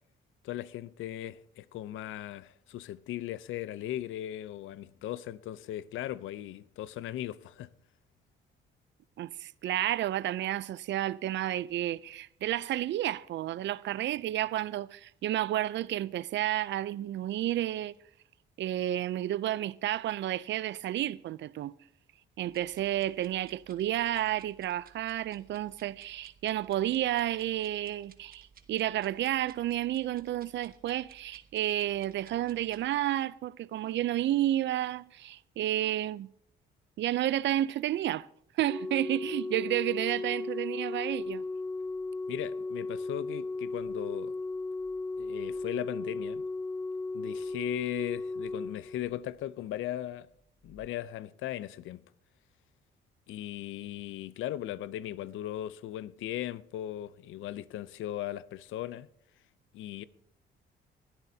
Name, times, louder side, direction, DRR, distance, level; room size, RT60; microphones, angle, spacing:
voice 1, 0.4-7.7 42.3-44.4 45.2-46.4 47.1-50.3 50.6-52.0 53.3-59.1 59.7-60.0, left 13 dB, 80° left, 0.6 m, -37 dB
voice 2, 9.2-17.9 18.6-21.7 22.4-36.3 37.0-38.3 38.6-41.4, right 13 dB, 65° right, 0.5 m, -31 dB
sound 1, 22.5-32.9, right 6 dB, 50° right, 1.3 m, -59 dB
Organ, 38.7-49.5 50.7-50.9, left 3 dB, 10° left, 0.5 m, -36 dB
21.0 x 12.5 x 2.8 m
cardioid pair, 90°, 20 cm